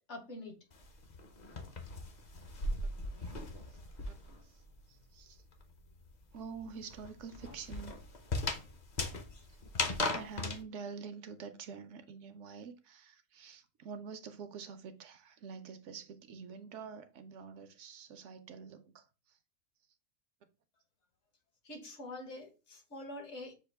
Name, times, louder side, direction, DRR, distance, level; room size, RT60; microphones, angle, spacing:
voice 1, 0.1-0.6 21.6-23.5, left 2 dB, 60° left, 1.3 m, -45 dB
sound 1, 0.7-4.5 4.7-10.6, left 2 dB, 45° left, 0.7 m, -38 dB
voice 2, 4.9-5.4 6.3-8.0 10.1-19.1, right 6 dB, 70° right, 0.9 m, -47 dB
6.4 x 2.4 x 3.3 m
omnidirectional pair, 1.4 m